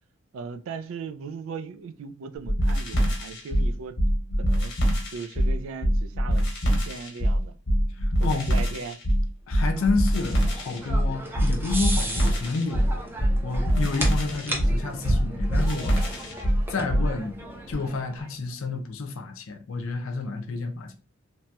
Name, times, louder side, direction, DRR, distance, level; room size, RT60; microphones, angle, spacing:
voice 1, 0.3-4.0 4.4-4.7 5.1-7.6 8.2-9.0, right 5 dB, 70° right, 0.3 m, -38 dB
sound 1, 2.4-17.1, equal, 60° left, 1.0 m, -24 dB
voice 2, 8.0-8.5 9.5-13.0 13.4-16.2 16.7-17.4 17.7-21.0, left 3 dB, 75° left, 0.5 m, -30 dB
sound 2, 9.7-18.3, right 1 dB, 10° right, 0.6 m, -35 dB
2.9 x 2.8 x 2.2 m
head